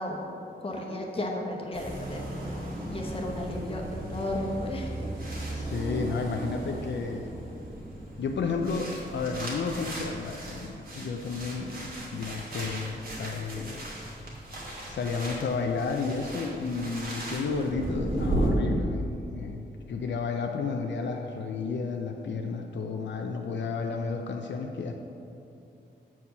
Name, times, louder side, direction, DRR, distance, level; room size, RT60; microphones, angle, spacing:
voice 1, 0.0-2.6 2.9-5.1, left 1 dB, 30° left, 0 dB, 1.1 m, -34 dB
sound 1, 1.7-18.5, right 1 dB, 50° right, 1.9 m, -36 dB
voice 2, 5.5-7.3 8.2-13.9 14.9-24.9, left 4 dB, 75° left, 3 dB, 0.6 m, -32 dB
7.1 x 4.7 x 6.7 m, 2.7 s
wide cardioid pair, 140°, 19 cm